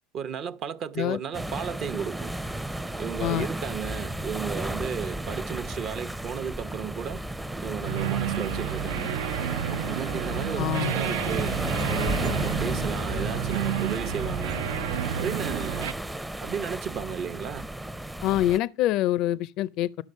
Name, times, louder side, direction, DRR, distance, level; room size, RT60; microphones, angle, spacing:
voice 1, 0.1-2.3 3.0-7.2 7.6-9.3 9.9-11.6 11.9-14.6 15.2-16.0 16.4-17.7, right 7 dB, 50° right, 0.7 m, -34 dB
sound 1, 1.3-18.6, right 1 dB, 10° right, 0.5 m, -33 dB
sound 2, 7.8-15.9, right 9 dB, 85° right, 0.4 m, -31 dB
voice 2, 10.6-10.9 18.2-20.0, left 14 dB, 60° left, 0.4 m, -25 dB
12.0 x 6.0 x 5.3 m
supercardioid pair, 90°, 0 cm